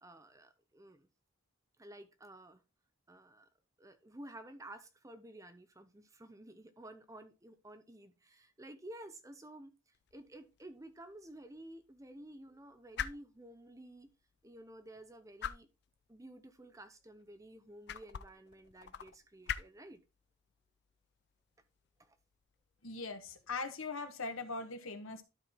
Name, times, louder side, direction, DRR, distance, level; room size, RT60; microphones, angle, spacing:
voice 1, 0.0-1.1 1.8-2.6 3.1-3.5 3.8-14.1 14.4-15.7 16.1-20.0 22.0-22.2, right 1 dB, 15° right, 0.7 m, -53 dB
sound 1, 9.9-23.5, left 9 dB, 50° left, 0.4 m, -48 dB
voice 2, 22.8-25.2, left 3 dB, 70° left, 1.3 m, -40 dB
12.0 x 4.5 x 3.5 m
head